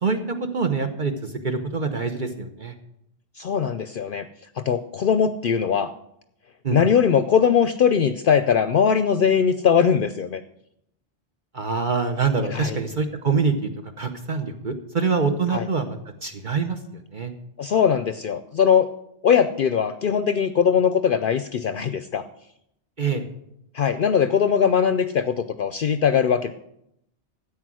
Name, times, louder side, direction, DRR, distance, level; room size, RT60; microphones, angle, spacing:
voice 1, 0.5-2.7 6.6-6.8 11.5-13.7 14.0-16.8 17.1-17.3 23.0-23.2, right 5 dB, 45° right, 5 dB, 1.1 m, -25 dB
voice 2, 3.4-4.2 4.6-5.9 6.7-10.4 12.5-12.8 15.5-15.7 17.6-18.9 19.2-22.2 23.7-26.5, left 7 dB, 60° left, 11 dB, 0.7 m, -20 dB
13.5 x 8.9 x 6.2 m, 0.78 s
omnidirectional pair, 1.2 m